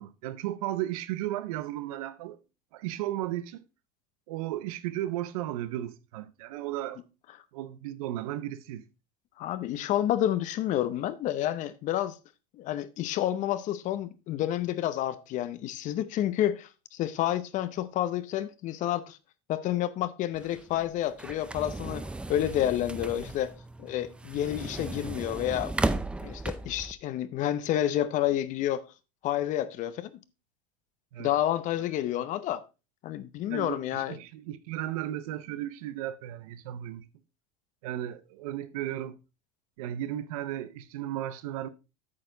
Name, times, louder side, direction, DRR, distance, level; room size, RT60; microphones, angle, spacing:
voice 1, 0.0-2.4 2.7-3.6 4.3-7.0 7.5-8.9 31.1-31.3 33.5-37.1 37.8-39.2 39.8-41.7, right 13 dB, 85° right, 0.8 m, -35 dB
voice 2, 9.4-12.1 12.6-19.2 19.5-22.0 22.3-23.5 23.8-25.7 26.2-28.8 29.2-30.1 31.2-32.6 33.0-34.2, left 12 dB, 45° left, 0.7 m, -29 dB
sound 1, 20.3-26.9, right 2 dB, 5° right, 0.5 m, -35 dB
8.7 x 6.6 x 3.8 m
supercardioid pair, 130°, 18 cm